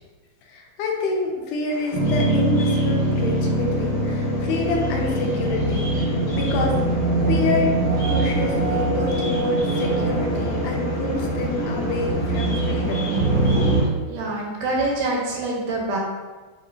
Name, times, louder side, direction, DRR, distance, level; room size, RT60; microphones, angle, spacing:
voice 1, 0.5-6.8 7.3-7.8 8.1-13.1, left 3 dB, 85° left, 0 dB, 2.1 m, -27 dB
Bird vocalization bird call bird song, 1.7-13.9, left 1 dB, 65° left, 1.5 m, -40 dB
sound 1, 1.9-13.8, right 1 dB, 65° right, 0.9 m, -22 dB
voice 2, 14.0-16.0, right 2 dB, 85° right, -2 dB, 2.4 m, -25 dB
6.8 x 2.5 x 2.5 m, 1.3 s
omnidirectional pair, 3.6 m